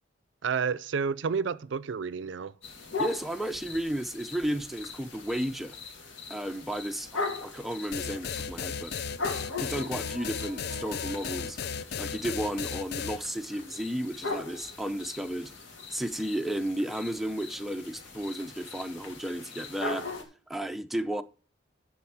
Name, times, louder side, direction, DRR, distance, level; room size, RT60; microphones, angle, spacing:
voice 1, 0.4-2.5, right 5 dB, 75° right, 0.5 m, -30 dB
sound 1, 2.6-20.2, left 3 dB, 80° left, 2.6 m, -40 dB
voice 2, 3.0-5.8 6.3-8.9 9.6-15.5 15.9-20.1 20.5-21.2, right 1 dB, ahead, 0.5 m, -33 dB
sound 2, 7.9-13.2, left 6 dB, 55° left, 0.5 m, -35 dB
11.5 x 4.3 x 7.2 m
head